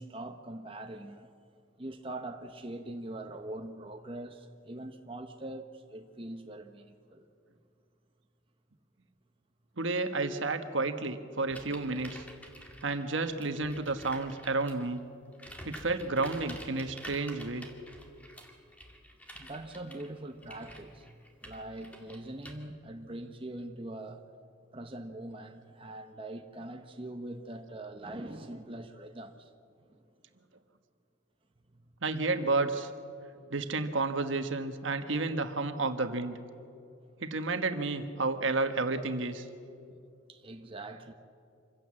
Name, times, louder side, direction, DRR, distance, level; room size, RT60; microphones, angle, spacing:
voice 1, 0.0-1.3 1.8-7.2 19.4-24.2 24.7-29.5 29.9-30.0 31.7-31.8 33.3-33.6 40.3-41.1, right 1 dB, 25° right, 5 dB, 0.9 m, -43 dB
voice 2, 9.8-12.2 12.8-15.0 15.6-17.7 32.0-32.9 33.5-36.4 37.2-39.4, right 3 dB, 70° right, 8 dB, 1.3 m, -31 dB
sound 1, 11.5-14.9 15.3-22.5, equal, 5° left, 1.9 m, -49 dB
26.0 x 16.0 x 7.6 m, 2.5 s
head